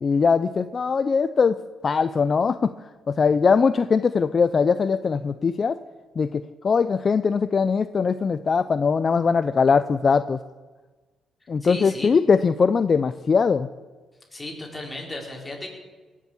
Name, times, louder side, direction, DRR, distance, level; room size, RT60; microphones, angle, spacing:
voice 1, 0.0-2.7 3.1-5.8 6.2-10.4 11.5-13.7, left 5 dB, 40° left, 12 dB, 0.5 m, -21 dB
voice 2, 11.6-12.1 14.3-15.7, left 2 dB, 15° left, -1 dB, 4.5 m, -35 dB
18.5 x 7.4 x 8.4 m, 1.3 s
cardioid pair, 90°, 0 cm